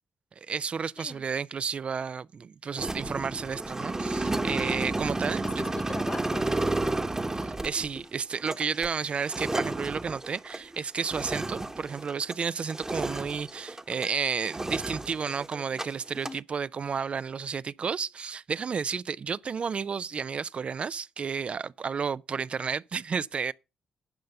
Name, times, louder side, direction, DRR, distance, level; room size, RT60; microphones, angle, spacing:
voice 1, 0.4-5.5 7.4-23.5, right 6 dB, 50° right, 0.4 m, -32 dB
sound 1, 2.8-12.4 12.7-14.1 14.4-15.9 16.1-16.4, right 2 dB, 20° right, 1.0 m, -32 dB
voice 2, 5.6-7.0 16.2-16.4, left 3 dB, 35° left, 0.8 m, -41 dB
10.5 x 5.3 x 5.7 m
hypercardioid pair, 45°, 3 cm